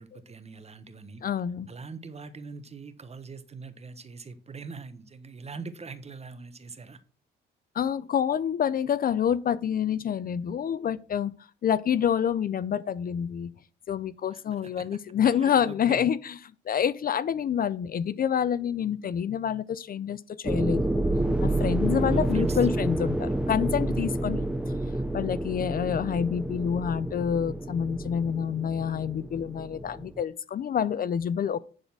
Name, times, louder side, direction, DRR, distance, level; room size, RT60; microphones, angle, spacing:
voice 1, 0.0-1.2 1.7-7.0 14.3-15.0 15.2-16.1 22.1-22.8, right 4 dB, 30° right, 1.3 m, -42 dB
voice 2, 1.2-1.7 7.8-11.3 11.6-13.5 13.9-16.3 16.7-21.0 21.4-24.5 25.1-31.6, left 8 dB, 45° left, 0.5 m, -27 dB
sound 1, 20.4-30.2, right 1 dB, 5° right, 0.6 m, -29 dB
10.5 x 4.1 x 6.1 m
cardioid pair, 90°, 20 cm